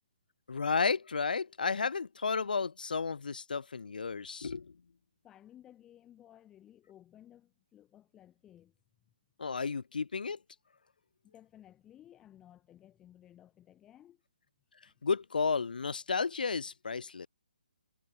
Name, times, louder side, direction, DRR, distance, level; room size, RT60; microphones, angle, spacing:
voice 1, 0.5-4.7 9.4-10.4 15.0-17.3, left 5 dB, 75° left, 0.7 m, -32 dB
voice 2, 5.2-8.7 11.2-14.2 14.8-14.9, left 11 dB, 10° left, 1.9 m, -57 dB
hypercardioid pair, 160°, 5 cm